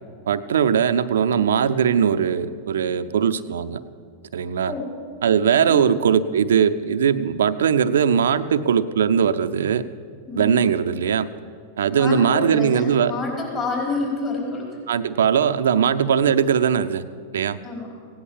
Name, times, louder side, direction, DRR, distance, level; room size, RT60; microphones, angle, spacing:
voice 1, 0.3-3.8 4.3-4.7 5.2-9.8 10.4-11.3 11.8-13.1 14.9-17.0 17.3-17.6, right 7 dB, 80° right, 11 dB, 0.6 m, -20 dB
voice 2, 12.0-14.7 17.6-17.9, left 3 dB, 35° left, -2 dB, 4.6 m, -28 dB
16.5 x 10.0 x 7.3 m, 2.2 s
hypercardioid pair, 105°, 0 cm